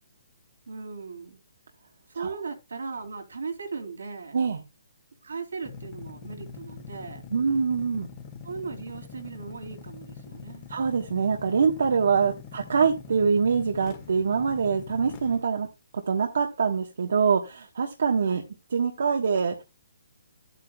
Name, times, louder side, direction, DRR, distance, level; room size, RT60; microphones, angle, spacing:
voice 1, 0.7-1.4 2.1-4.4 5.2-7.2 8.4-10.7 12.2-12.4 18.2-18.4, right 4 dB, 85° right, 2.6 m, -38 dB
sound 1, 5.6-15.4, left 6 dB, 30° left, 1.5 m, -43 dB
voice 2, 7.3-8.1 10.7-15.7 15.9-18.4 18.7-19.5, right 5 dB, 70° right, 1.2 m, -24 dB
10.5 x 8.4 x 2.3 m
hypercardioid pair, 150°, 0 cm